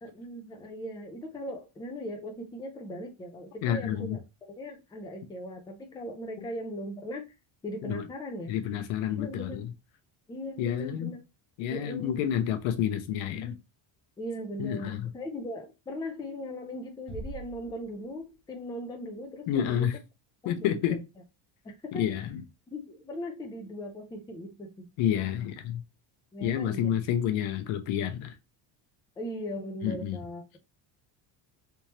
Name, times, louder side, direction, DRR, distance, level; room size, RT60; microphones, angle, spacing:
voice 1, 0.0-4.2 4.6-7.3 7.6-8.5 9.2-9.6 10.3-11.2 11.7-12.2 14.2-19.9 20.4-21.0 21.6-22.2 22.7-24.9 26.3-27.0 29.2-30.4, equal, 10° left, 0.4 m, -39 dB
voice 2, 3.6-4.2 6.4-6.5 7.8-8.1 8.5-9.7 10.6-11.1 11.6-13.6 14.6-15.1 19.5-20.0 20.4-21.0 21.9-22.4 25.0-25.8 26.4-28.3 29.8-30.2, left 10 dB, 75° left, 0.8 m, -29 dB
Bass drum, 17.1-18.5, right 3 dB, 40° left, 0.8 m, -43 dB
3.5 x 3.0 x 2.9 m
cardioid pair, 165°, 47 cm